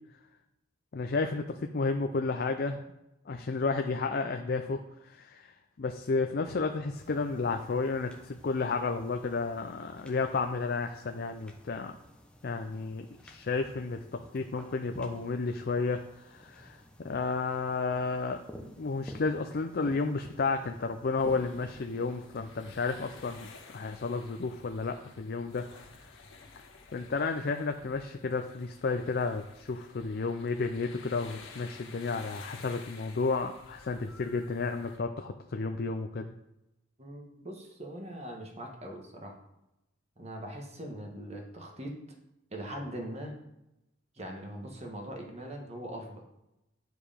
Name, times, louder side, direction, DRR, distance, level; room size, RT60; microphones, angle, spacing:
voice 1, 0.9-2.9 3.3-12.0 12.4-18.4 18.8-25.6 26.9-36.3, left 4 dB, 50° left, 6 dB, 0.5 m, -32 dB
sound 1, 6.9-22.8, equal, 5° left, 0.8 m, -52 dB
sound 2, 21.2-35.0, left 4 dB, 75° left, 1.5 m, -52 dB
voice 2, 37.0-39.4 40.2-41.9 42.5-43.3 44.1-46.2, right 1 dB, 30° right, 1 dB, 1.4 m, -41 dB
9.4 x 4.9 x 5.0 m, 0.90 s
head